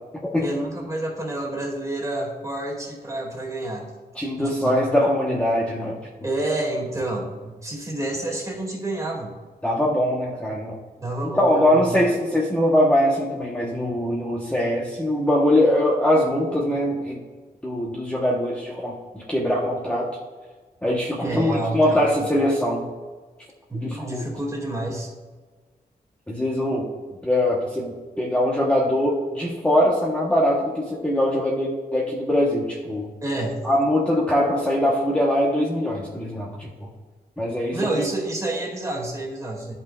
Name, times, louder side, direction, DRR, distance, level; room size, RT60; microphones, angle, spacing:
voice 1, 0.4-3.9 4.4-4.8 6.2-9.3 11.0-12.0 21.2-22.1 23.7-25.1 33.2-33.6 37.7-39.7, right 1 dB, 20° right, -2 dB, 2.1 m, -29 dB
voice 2, 4.1-6.0 9.6-10.8 11.4-17.2 17.6-20.1 20.8-22.9 23.7-24.2 26.3-26.9 27.2-33.1 33.6-36.9 37.4-38.0, left 1 dB, 5° left, -4 dB, 0.9 m, -22 dB
13.0 x 5.6 x 2.3 m, 1.4 s
wide cardioid pair, 125°, 16 cm